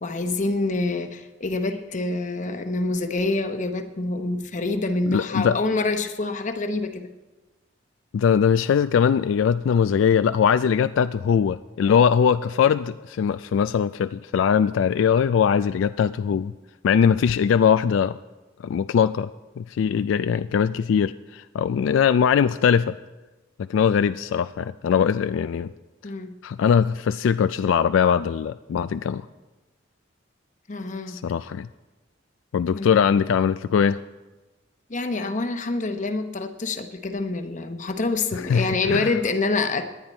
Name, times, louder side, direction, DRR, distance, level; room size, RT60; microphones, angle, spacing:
voice 1, 0.0-7.1 26.0-26.3 30.7-31.2 32.7-33.0 34.9-39.8, left 3 dB, 40° left, 8 dB, 0.9 m, -26 dB
voice 2, 5.1-5.6 8.1-16.5 16.8-18.2 18.6-19.3 19.6-22.9 23.6-25.7 26.4-29.2 31.1-31.7 32.5-34.0 38.5-39.1, left 7 dB, 75° left, 13 dB, 0.3 m, -21 dB
18.5 x 10.5 x 4.3 m, 1.2 s
head